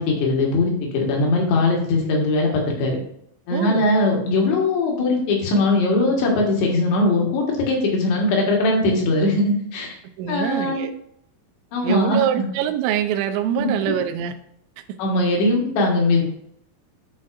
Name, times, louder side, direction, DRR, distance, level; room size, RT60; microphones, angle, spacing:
voice 1, 0.0-3.0 3.5-10.0 10.3-10.9 11.7-12.5 15.0-16.2, left 2 dB, 70° left, -1 dB, 3.6 m, -20 dB
voice 2, 3.5-3.9 10.2-10.9 11.8-14.3, right 10 dB, 80° right, 7 dB, 2.7 m, -24 dB
11.5 x 4.0 x 2.5 m, 0.71 s
omnidirectional pair, 5.4 m